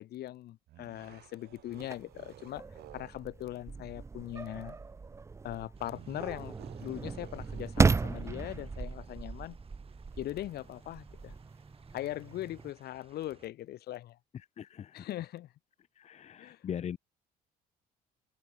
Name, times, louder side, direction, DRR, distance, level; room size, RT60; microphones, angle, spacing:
voice 1, 0.0-2.6 2.9-4.8 5.4-9.6 10.2-11.4 11.9-14.2 14.9-15.5 16.4-16.6, left 14 dB, 70° left, 3.0 m, -40 dB
sound 1, 0.7-3.3 5.9-8.2, right 14 dB, 75° right, 4.4 m, -54 dB
sound 2, 1.7-12.7, right 4 dB, 15° right, 0.5 m, -35 dB
sound 3, 5.7-13.5, right 6 dB, 35° right, 4.0 m, -61 dB
voice 2, 14.3-15.1 16.0-17.0, left 9 dB, 40° left, 0.9 m, -40 dB
cardioid pair, 110°, 17 cm